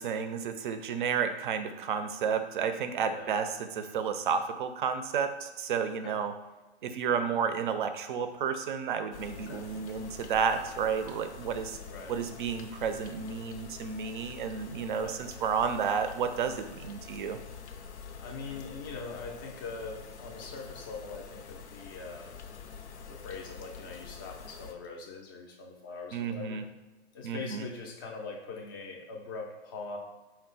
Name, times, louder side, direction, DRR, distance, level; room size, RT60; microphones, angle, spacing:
voice 1, 0.0-6.3 6.8-11.8 12.1-17.4 26.1-26.6 27.2-27.7, right 6 dB, 50° right, 8 dB, 0.5 m, -31 dB
sound 1, 9.1-24.7, left 6 dB, 85° left, 0.6 m, -46 dB
voice 2, 9.3-9.6 11.9-12.1 14.9-15.2 18.2-22.3 23.1-26.6 27.1-30.0, left 4 dB, 20° left, 1 dB, 0.4 m, -42 dB
4.5 x 2.1 x 3.9 m, 1.2 s
hypercardioid pair, 145°, 33 cm